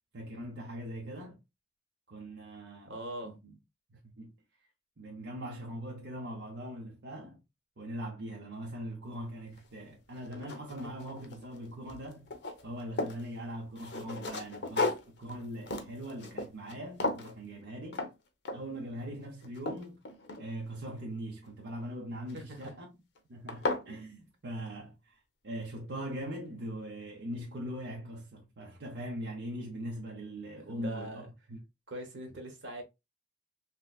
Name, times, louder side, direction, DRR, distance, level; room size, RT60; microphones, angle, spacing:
voice 1, 0.1-1.4 2.1-2.9 3.2-3.5 3.9-4.3 5.0-7.4 7.8-12.3 12.6-18.1 18.5-20.0 20.4-22.9 23.3-25.2 25.4-31.6, right 1 dB, 70° right, 0.7 m, -41 dB
voice 2, 2.9-3.4 22.3-22.8 30.5-31.3 31.9-32.8, right 1 dB, 85° right, 1.0 m, -42 dB
sound 1, 9.6-9.7 10.1-11.6 11.9-13.2 13.8-16.8 17.0-17.4 17.9-18.1 18.5-18.8 19.2-20.8 22.3-22.7 23.2-23.3 23.5-23.9, left 2 dB, 65° left, 0.7 m, -35 dB
3.3 x 2.8 x 2.3 m
head